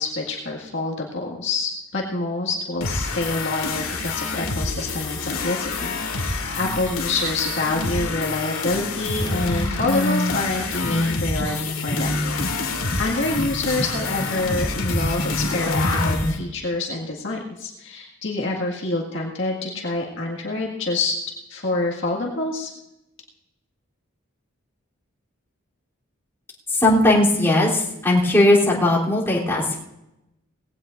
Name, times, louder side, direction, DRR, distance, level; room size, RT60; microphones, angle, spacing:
voice 1, 0.0-12.7 13.0-21.2 21.5-22.7, left 2 dB, 60° left, -2 dB, 1.9 m, -27 dB
sound 1, 2.8-16.4, left 3 dB, 90° left, 2.0 m, -27 dB
sound 2, 9.5-16.3, left 1 dB, 40° left, 2.0 m, -28 dB
voice 2, 26.7-29.8, left 1 dB, 10° left, -6 dB, 3.2 m, -18 dB
19.5 x 16.5 x 2.6 m, 0.89 s
head